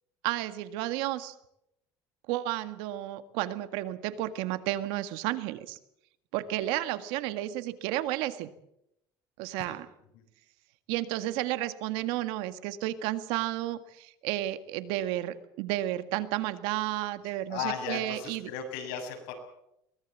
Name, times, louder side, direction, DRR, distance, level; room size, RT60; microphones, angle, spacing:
voice 1, 0.2-1.3 2.3-5.8 6.3-8.5 9.4-9.9 10.9-18.5, right 14 dB, 80° right, 11 dB, 1.8 m, -32 dB
voice 2, 17.2-19.3, left 7 dB, 90° left, 4 dB, 6.9 m, -36 dB
22.5 x 20.5 x 7.4 m, 0.80 s
cardioid pair, 140°, 8 cm